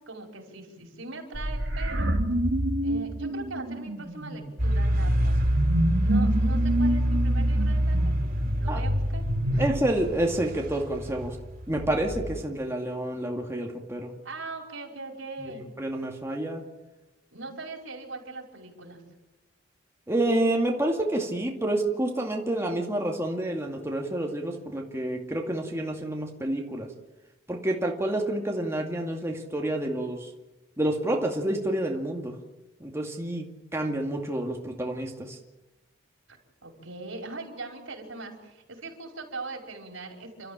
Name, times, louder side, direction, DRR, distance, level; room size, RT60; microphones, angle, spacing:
voice 1, 0.1-2.1 2.8-5.4 6.0-8.1 8.6-9.2 9.5-9.6 14.2-15.6 17.3-19.0 36.6-40.5, right 3 dB, 75° right, 2 dB, 5.1 m, -40 dB
sound 1, 1.3-9.7, right 1 dB, 60° right, 2.3 m, -28 dB
sound 2, 4.6-12.4, equal, 45° right, 3.8 m, -26 dB
voice 2, 9.6-11.4 11.7-14.1 15.4-16.6 20.1-26.9 27.5-30.3 30.8-32.3 32.8-35.4, right 1 dB, 15° right, 0 dB, 2.3 m, -29 dB
29.0 x 13.5 x 8.8 m, 1.0 s
head